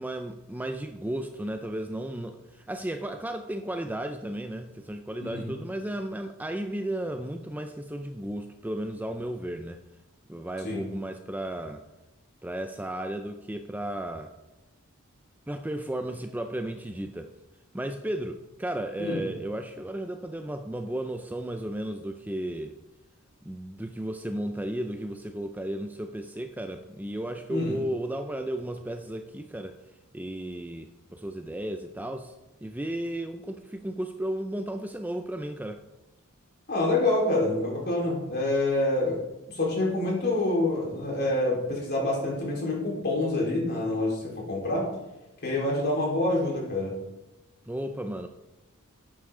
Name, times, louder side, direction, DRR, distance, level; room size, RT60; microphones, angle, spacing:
voice 1, 0.0-9.8 10.3-11.8 12.4-14.3 15.5-17.3 17.7-22.8 23.4-29.8 30.1-32.3 32.6-35.8 47.7-48.3, right 1 dB, 10° right, 7 dB, 0.5 m, -34 dB
voice 2, 5.2-5.5 10.6-10.9 19.0-19.3 27.5-27.8 36.7-39.2 39.5-44.9 45.4-46.9, left 2 dB, 50° left, -3 dB, 4.2 m, -27 dB
11.5 x 8.8 x 3.8 m, 1.0 s
head